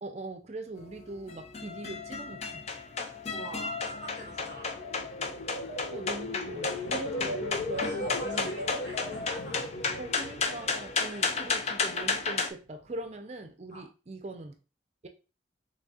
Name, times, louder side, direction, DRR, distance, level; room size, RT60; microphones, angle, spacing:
voice 1, 0.0-2.6 5.9-8.5 10.0-14.6 15.0-15.1, right 2 dB, 35° right, 6 dB, 0.5 m, -41 dB
sound 1, 0.8-12.5, left 4 dB, 35° left, 0.4 m, -33 dB
voice 2, 2.9-4.8 6.8-7.0 7.7-9.6 11.0-11.2 13.7-13.9, equal, 70° left, -3 dB, 2.0 m, -46 dB
sound 2, 4.4-11.6 12.0-12.4, left 1 dB, 85° left, 0.7 m, -37 dB
4.0 x 3.2 x 2.3 m, 0.32 s
head